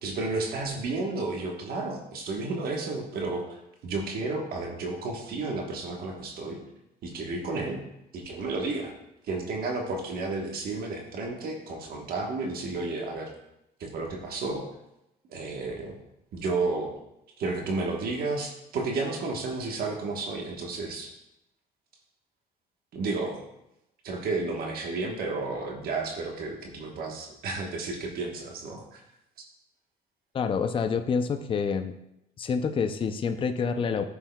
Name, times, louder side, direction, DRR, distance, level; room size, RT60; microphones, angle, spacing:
voice 1, 0.0-6.6 7.0-7.8 8.1-8.9 9.2-13.3 13.8-14.7 15.3-16.0 16.3-16.9 17.4-21.1 22.9-23.5 24.0-29.0, right 3 dB, 60° right, 1 dB, 1.2 m, -32 dB
voice 2, 30.3-31.9 32.4-34.0, left 5 dB, 30° left, 7 dB, 0.5 m, -27 dB
11.5 x 6.3 x 2.3 m, 0.84 s
cardioid pair, 110°, 17 cm